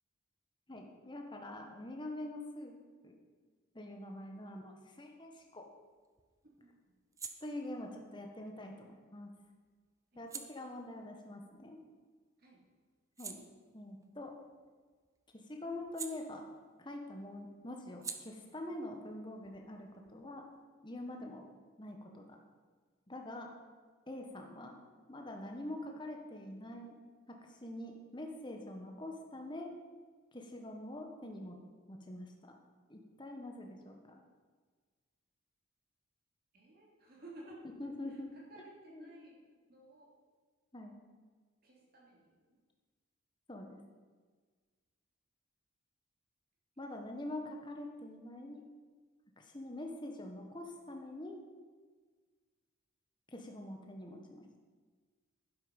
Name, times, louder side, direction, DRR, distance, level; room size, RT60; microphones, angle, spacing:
voice 1, 0.7-2.8 3.0-3.1 3.7-5.7 7.4-9.3 10.1-11.8 13.2-13.4 13.7-14.3 15.5-16.4 16.8-20.4 20.8-21.4 21.8-22.4 23.1-23.5 24.1-24.7 25.1-27.0 27.3-29.7 30.3-31.5 31.9-32.3 32.9-34.2 37.8-38.3 38.9-39.1 40.7-41.0 43.5-43.8 46.8-48.6 49.4-51.4 53.3-54.6, left 1 dB, 20° left, 2 dB, 1.5 m, -45 dB
sound 1, 5.4-12.3 12.7-16.9 17.2-20.6, right 5 dB, 15° right, 0.6 m, -52 dB
voice 2, 6.4-6.9 10.1-10.2 12.4-12.6 36.5-37.6 38.0-39.4 39.7-40.1 41.6-42.6 47.1-47.4 49.8-49.9, right 1 dB, 45° right, -2 dB, 3.0 m, -56 dB
11.5 x 11.0 x 5.4 m, 1.5 s
head